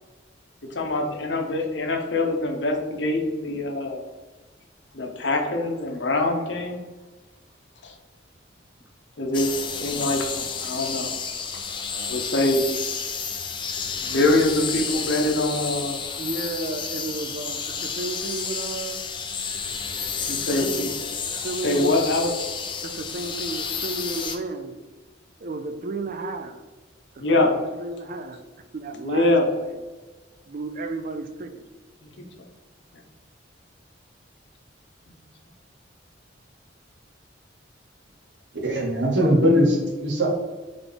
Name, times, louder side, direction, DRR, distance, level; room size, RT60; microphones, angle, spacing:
voice 1, 0.7-4.1 4.9-6.8 7.8-7.9 9.2-11.1 12.1-12.7 14.0-16.2 20.3-20.9 21.6-22.3 27.2-27.5 29.0-29.5 32.0-32.1, left 2 dB, 70° left, 3 dB, 0.8 m, -24 dB
sound 1, 9.3-24.4, left 6 dB, 25° left, 0.4 m, -31 dB
voice 2, 11.9-12.2 16.2-19.0 20.4-21.0 21.3-22.2 22.8-24.8 25.4-26.6 27.1-28.4 28.7-29.8 30.5-31.6, right 3 dB, 50° right, 7 dB, 0.4 m, -33 dB
voice 3, 38.5-40.3, equal, 70° right, -1 dB, 1.1 m, -20 dB
3.8 x 3.5 x 3.8 m, 1.3 s
head